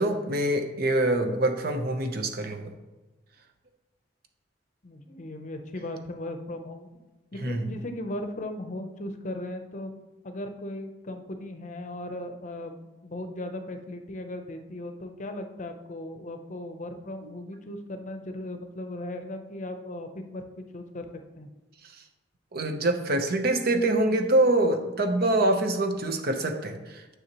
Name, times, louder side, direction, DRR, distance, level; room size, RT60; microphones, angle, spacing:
voice 1, 0.0-2.7 7.4-7.6 22.5-27.0, right 1 dB, 55° right, 6 dB, 0.8 m, -25 dB
voice 2, 4.8-7.0 7.3-9.9 10.2-21.1 21.3-21.5, left 1 dB, 40° left, 6 dB, 0.6 m, -37 dB
9.4 x 6.3 x 3.0 m, 1.1 s
head